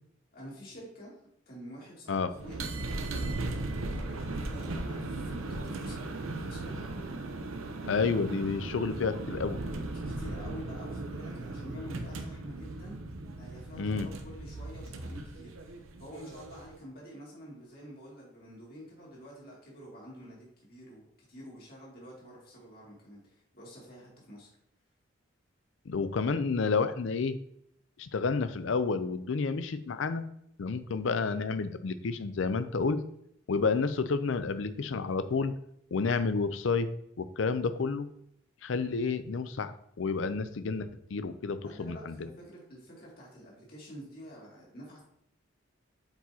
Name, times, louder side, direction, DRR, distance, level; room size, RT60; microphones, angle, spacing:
voice 1, 0.3-1.1 1.5-7.1 9.6-13.0 13.4-24.5 41.6-45.0, equal, 45° left, -4 dB, 2.3 m, -48 dB
sound 1, 2.3-16.8, right 2 dB, 90° right, 0.7 m, -37 dB
voice 2, 7.9-9.6 13.8-14.1 25.9-27.4 28.0-30.2 30.6-33.0 33.5-35.5 35.9-36.9 37.2-38.1 38.6-42.2, left 4 dB, 70° left, 12 dB, 0.5 m, -30 dB
7.7 x 4.7 x 2.8 m, 0.73 s
head